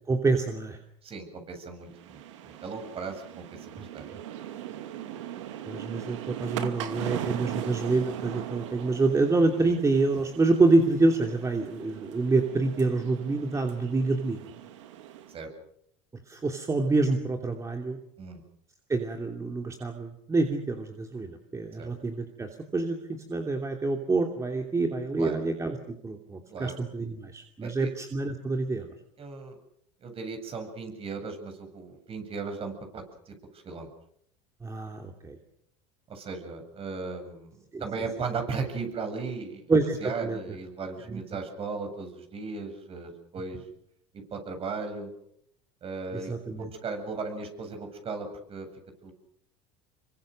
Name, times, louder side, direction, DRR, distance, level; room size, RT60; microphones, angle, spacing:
voice 1, 0.1-0.8 3.8-4.2 5.7-14.4 16.3-18.0 18.9-23.0 23.3-28.9 34.6-35.4 37.7-37.8 39.7-40.0 40.2-40.4 41.1-41.2 46.1-46.7, right 3 dB, 20° right, 4 dB, 2.8 m, -27 dB
voice 2, 1.0-4.1 9.6-9.8 15.3-15.5 18.2-18.4 21.8-21.9 25.2-25.4 26.5-26.8 27.6-27.9 29.2-29.6 30.0-33.9 36.1-39.6 40.0-43.6 44.1-45.1 45.8-48.7 49.0-49.1, right 4 dB, 40° right, 5 dB, 7.8 m, -37 dB
sound 1, 1.9-15.4, right 11 dB, 85° right, 2.6 m, -39 dB
27.0 x 23.5 x 6.6 m, 0.71 s
supercardioid pair, 95°, 15 cm